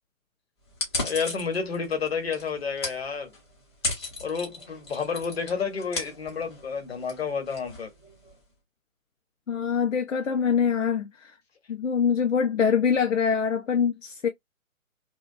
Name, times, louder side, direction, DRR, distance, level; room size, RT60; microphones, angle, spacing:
sound 1, 0.7-8.4, left 2 dB, 20° left, 0.8 m, -36 dB
voice 1, 1.0-3.3 4.2-7.9, left 5 dB, 45° left, 1.0 m, -30 dB
voice 2, 9.5-11.3 11.7-14.3, left 6 dB, 65° left, 0.5 m, -24 dB
2.7 x 2.1 x 2.5 m
figure-of-eight pair, 140°, 42 cm